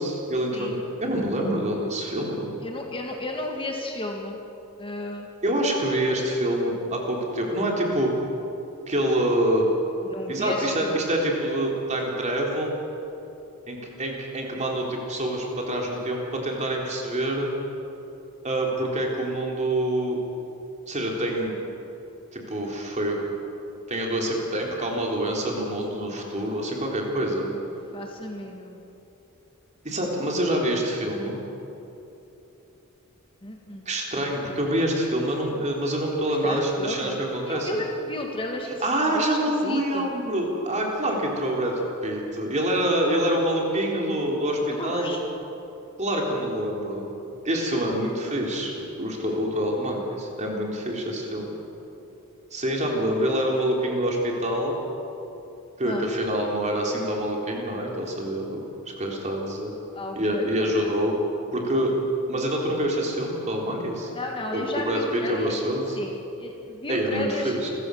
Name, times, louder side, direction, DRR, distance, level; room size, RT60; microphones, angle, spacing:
voice 1, 0.0-2.5 5.4-8.1 8.9-9.7 10.3-12.8 13.7-17.5 18.4-20.2 20.9-21.5 22.3-23.2 23.9-27.5 29.8-31.4 33.9-37.8 38.8-41.7 42.0-45.2 46.0-47.1 47.4-51.5 52.5-54.8 55.8-59.7 60.2-61.1 61.5-61.9 62.3-64.1 64.5-66.0 66.9-67.7, right 1 dB, 30° right, -1 dB, 3.6 m, -26 dB
voice 2, 2.6-4.4 4.8-5.3 10.0-11.0 24.2-24.3 27.4-28.8 33.4-33.9 34.2-34.6 36.2-40.1 44.7-45.2 55.8-56.1 59.9-60.9 64.1-65.6 65.9-67.7, left 2 dB, 25° left, 1 dB, 1.9 m, -34 dB
29.0 x 15.0 x 6.4 m, 2.9 s
head